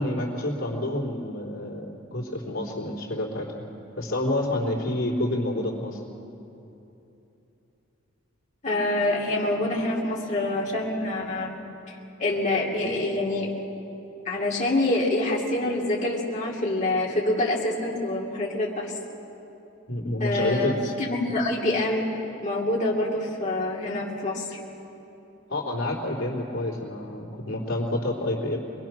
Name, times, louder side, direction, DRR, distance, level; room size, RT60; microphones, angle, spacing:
voice 1, 0.0-3.5 4.0-6.0 19.9-20.8 25.5-28.6, left 1 dB, 80° left, -2 dB, 3.5 m, -28 dB
voice 2, 8.6-11.5 11.9-13.5 14.2-18.9 20.2-22.1 22.4-24.6, left 2 dB, 40° left, -4 dB, 2.8 m, -26 dB
25.0 x 22.0 x 6.1 m, 3.0 s
head